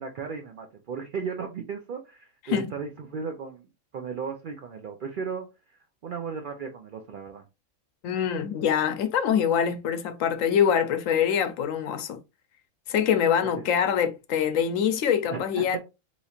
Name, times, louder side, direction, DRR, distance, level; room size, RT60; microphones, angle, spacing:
voice 1, 0.0-3.7 3.9-5.5 6.0-7.4 13.4-13.7 15.3-15.8, right 5 dB, 55° right, 0.6 m, -35 dB
voice 2, 8.0-12.2 12.9-15.8, left 8 dB, 90° left, 1.0 m, -24 dB
4.0 x 3.0 x 2.4 m
omnidirectional pair, 1.3 m